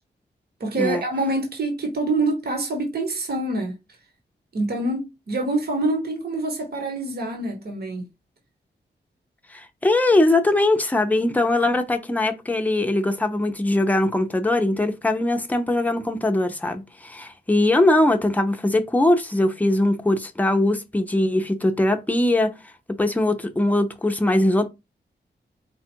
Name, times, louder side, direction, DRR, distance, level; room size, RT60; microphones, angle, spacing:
voice 1, 0.6-3.8 4.5-8.1, right 2 dB, 60° right, 1.3 m, -26 dB
voice 2, 9.5-22.5 23.0-24.7, left 1 dB, 10° left, 0.6 m, -21 dB
4.5 x 2.4 x 4.4 m
wide cardioid pair, 150°, 19 cm